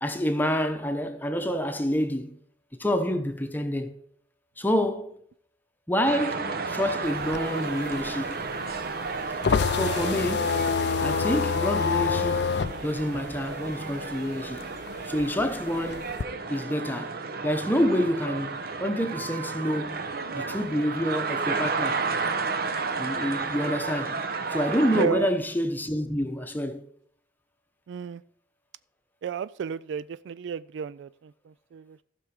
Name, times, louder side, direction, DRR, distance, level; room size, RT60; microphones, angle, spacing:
voice 1, 0.0-2.3 2.8-3.9 4.6-5.2 5.9-8.4 9.7-10.6 11.0-12.5 12.8-14.8 15.0-16.1 16.5-20.1 20.3-22.0 23.0-24.2 24.5-26.9, equal, 10° left, 0.9 m, -28 dB
sound 1, 6.1-25.1, right 4 dB, 55° right, 0.9 m, -32 dB
sound 2, 7.1-14.2 14.5-16.2, left 6 dB, 65° left, 0.4 m, -27 dB
voice 2, 24.9-25.3 27.9-28.2 29.2-32.0, right 7 dB, 80° right, 0.3 m, -33 dB
15.0 x 6.2 x 4.9 m
head